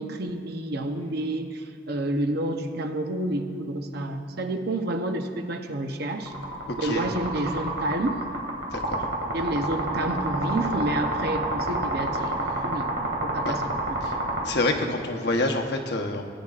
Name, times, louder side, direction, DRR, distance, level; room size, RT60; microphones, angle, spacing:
voice 1, 0.0-6.3 6.8-8.2 9.3-13.7, right 1 dB, 60° right, 6 dB, 0.8 m, -29 dB
sound 1, 6.3-14.4, right 1 dB, 90° right, 2.2 m, -28 dB
voice 2, 8.7-9.0 13.4-13.5 14.0-14.1 14.4-16.2, left 2 dB, 65° left, 3 dB, 1.0 m, -27 dB
18.5 x 9.7 x 2.5 m, 2.5 s
head